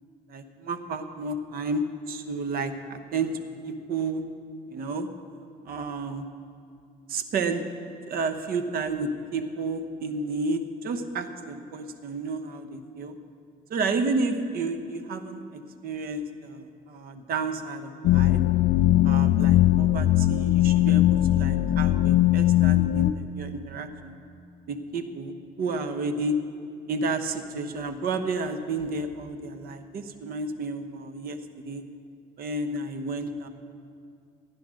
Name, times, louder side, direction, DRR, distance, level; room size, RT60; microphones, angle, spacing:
voice 1, 0.3-4.2 4.7-5.1 5.6-6.3 7.1-7.6 8.1-13.1 13.7-18.4 19.0-24.2 24.7-26.4 26.9-31.8 32.4-33.5, right 3 dB, 60° right, 9 dB, 1.1 m, -31 dB
sound 1, 18.0-23.1, left 14 dB, 75° left, 0.4 m, -20 dB
15.5 x 9.6 x 6.4 m, 2.4 s
cardioid pair, 110°, 17 cm